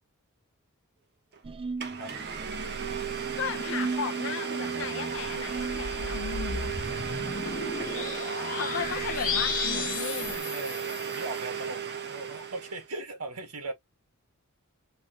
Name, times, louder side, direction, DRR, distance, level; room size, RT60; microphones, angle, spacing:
Domestic sounds home sounds, 1.3-1.4 1.8-12.9, right 7 dB, 50° right, 1.1 m, -35 dB
sound 1, 1.4-10.4, right 4 dB, 25° right, 0.3 m, -39 dB
voice 1, 3.4-6.8 7.4-7.7 8.6-10.4, left 7 dB, 55° left, 0.5 m, -36 dB
sound 2, 5.5-11.3, left 6 dB, 40° left, 1.1 m, -34 dB
voice 2, 7.8-8.3 9.7-13.7, right 2 dB, 85° right, 1.9 m, -39 dB
4.1 x 3.6 x 3.1 m
head